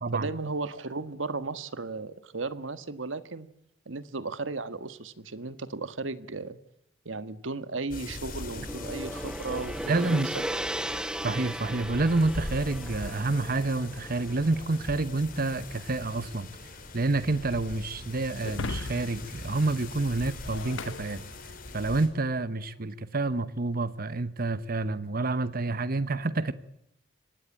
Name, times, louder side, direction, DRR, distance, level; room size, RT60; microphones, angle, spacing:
voice 1, 0.1-3.5 3.8-6.6 7.0-10.2, right 3 dB, 85° right, 13 dB, 1.5 m, -35 dB
sound 1, 7.9-22.1, left 2 dB, 50° left, 4.3 m, -42 dB
Gong, 7.9-16.2, right 1 dB, 5° right, 1.0 m, -37 dB
voice 2, 9.9-10.4 11.2-16.5 16.9-21.2 21.7-26.5, right 2 dB, 50° right, 15 dB, 1.0 m, -28 dB
Shatter, 18.4-21.9, left 3 dB, 80° left, 1.0 m, -39 dB
24.5 x 19.0 x 8.9 m, 0.79 s
head